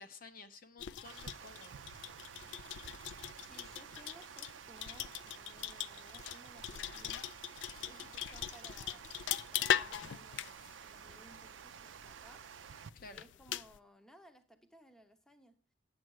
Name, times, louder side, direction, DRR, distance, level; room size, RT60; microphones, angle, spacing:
voice 1, 0.0-1.8 7.8-8.2 12.9-13.2, left 3 dB, 50° left, 8 dB, 0.8 m, -54 dB
sound 1, 0.8-13.8, left 10 dB, 80° left, 0.4 m, -41 dB
Water, 1.0-12.9, right 8 dB, 85° right, 0.4 m, -52 dB
voice 2, 3.3-7.3 7.8-9.1 9.5-12.6 13.0-15.5, right 1 dB, 5° left, 7 dB, 0.7 m, -60 dB
9.4 x 7.6 x 4.7 m, 0.39 s
head